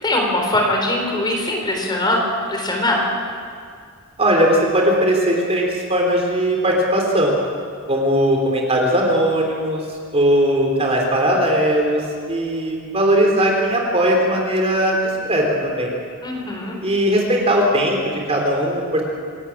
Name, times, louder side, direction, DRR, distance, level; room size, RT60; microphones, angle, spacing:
voice 1, 0.0-3.1 16.2-16.8, left 1 dB, 20° left, 0 dB, 4.1 m, -21 dB
voice 2, 4.2-7.3 7.9-9.8 10.1-12.0 12.3-15.0 15.2-15.9 16.8-19.0, equal, 30° right, 0 dB, 3.5 m, -18 dB
27.0 x 13.5 x 8.7 m, 2.2 s
head